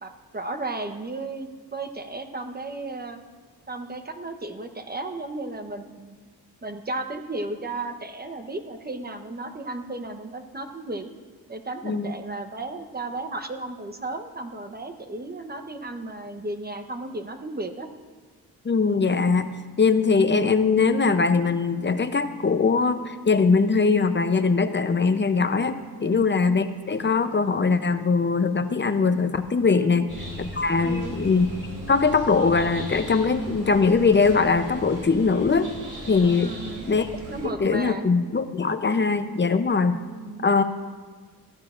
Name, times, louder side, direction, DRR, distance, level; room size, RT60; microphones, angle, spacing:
voice 1, 0.0-3.2 3.7-6.3 6.6-11.1 11.5-17.9 26.0-26.3 29.7-29.9 30.8-31.1 36.4-36.8 37.3-38.1 40.1-40.5, right 2 dB, 25° right, 7 dB, 1.0 m, -34 dB
voice 2, 18.6-19.5 19.8-30.1 30.4-31.5 31.9-35.7 36.1-36.5 36.8-37.1 37.4-40.0 40.4-40.6, left 4 dB, 30° left, 10 dB, 0.7 m, -21 dB
sound 1, 30.1-37.5, right 1 dB, 55° right, 3.5 m, -38 dB
15.0 x 10.5 x 2.5 m, 1.5 s
cardioid pair, 65°, 38 cm